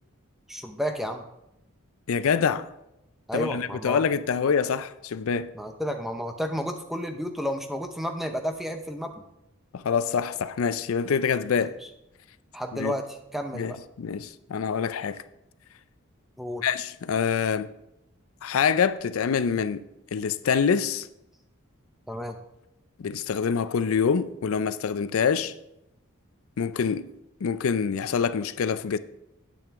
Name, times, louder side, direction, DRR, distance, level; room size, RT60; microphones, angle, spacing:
voice 1, 0.5-1.3 3.3-4.0 5.5-9.2 11.6-11.7 12.5-13.8 16.4-16.6 22.1-22.4, equal, ahead, 0.6 m, -31 dB
voice 2, 2.1-2.7 3.3-5.5 9.7-11.7 12.7-12.9 13.5-15.2 16.6-17.7 18.4-19.8 20.1-21.1 23.0-25.5 26.6-27.1 27.4-29.0, left 6 dB, 75° left, 0.4 m, -25 dB
8.8 x 8.6 x 3.6 m
head